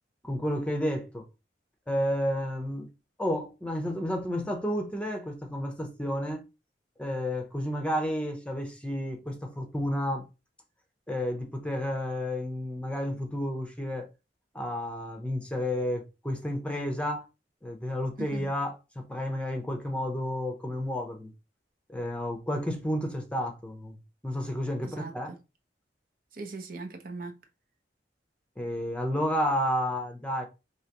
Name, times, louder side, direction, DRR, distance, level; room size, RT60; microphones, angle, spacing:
voice 1, 0.2-1.2 1.9-2.9 3.2-6.4 7.0-10.3 11.1-14.1 14.5-17.2 17.6-21.3 21.9-23.9 24.2-25.3 28.6-30.4, equal, 5° left, 0.7 m, -31 dB
voice 2, 18.2-18.5 24.8-25.4 26.3-27.4, right 3 dB, 55° right, 0.7 m, -40 dB
4.8 x 3.0 x 2.9 m
head